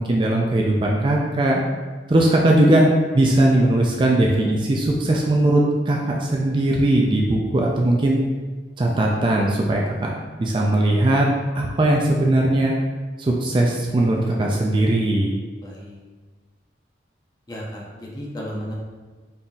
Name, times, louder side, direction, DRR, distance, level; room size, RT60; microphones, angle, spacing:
voice 1, 0.0-1.6 2.1-8.2 8.8-11.3 11.6-12.7 13.2-15.3, right 1 dB, 25° right, -1 dB, 0.3 m, -19 dB
voice 2, 15.6-16.0 17.5-18.7, equal, 20° left, -3 dB, 0.7 m, -33 dB
4.0 x 3.8 x 2.3 m, 1.3 s
head